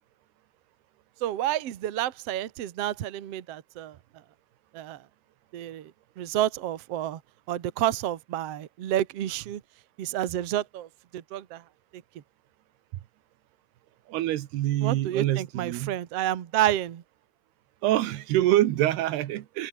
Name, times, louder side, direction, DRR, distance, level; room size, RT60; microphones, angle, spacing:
voice 1, 1.2-4.0 4.7-5.0 5.5-5.9 6.2-7.2 7.5-9.6 10.0-11.6 11.9-12.0 14.8-17.0, right 12 dB, 55° right, 1.8 m, -29 dB
voice 2, 14.1-16.0 17.8-19.7, right 14 dB, 80° right, 3.2 m, -25 dB
omnidirectional pair, 4.6 m